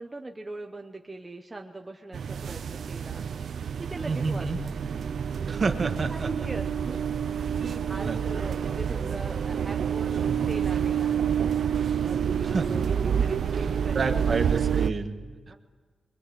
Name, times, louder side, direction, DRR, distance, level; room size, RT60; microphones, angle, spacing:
voice 1, 0.0-3.3 3.9-4.7 6.1-7.0 7.6-11.5 12.0-14.6 15.5-15.6, right 2 dB, 15° right, 3 dB, 1.0 m, -40 dB
sound 1, 2.1-14.9, right 8 dB, 65° right, 0.7 m, -28 dB
voice 2, 4.0-4.6 5.5-6.3 8.1-8.2 10.2-10.4 12.4-12.8 13.9-15.4, right 4 dB, 40° right, 6 dB, 1.5 m, -29 dB
26.0 x 23.0 x 8.6 m, 1.4 s
wide cardioid pair, 175°, 0 cm